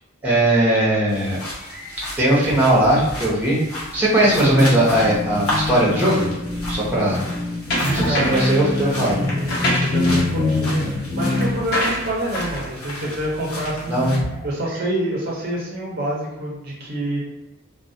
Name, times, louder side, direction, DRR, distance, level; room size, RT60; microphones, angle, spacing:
voice 1, 0.2-1.4 1.7-3.6 3.9-6.3 6.7-7.3 7.9-9.2 13.9-14.4, right 1 dB, 10° right, -7 dB, 0.8 m, -19 dB
sound 1, 1.1-14.2, left 1 dB, 90° left, 0.9 m, -33 dB
sound 2, 4.2-11.8 12.8-13.0 13.4-14.4, left 3 dB, 30° left, 0.8 m, -26 dB
sound 3, 7.7-8.6 9.3-14.0, equal, 55° left, 1.1 m, -26 dB
voice 2, 8.1-14.0 14.4-17.2, right 1 dB, 45° right, -4 dB, 0.5 m, -27 dB
2.2 x 2.1 x 2.6 m, 1.0 s
head